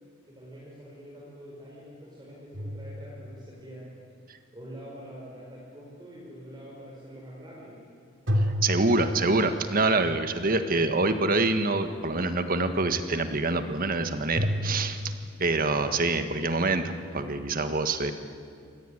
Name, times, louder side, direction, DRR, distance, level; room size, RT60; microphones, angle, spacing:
voice 1, 0.3-4.0 4.5-7.8, equal, 20° right, -5 dB, 5.3 m, -45 dB
sound 1, 2.5-3.7 8.3-9.8 14.4-15.5, equal, 65° right, 3.0 m, -30 dB
voice 2, 8.4-15.1 15.4-18.1, right 3 dB, 45° right, 9 dB, 1.6 m, -26 dB
26.5 x 19.0 x 10.0 m, 2.3 s
head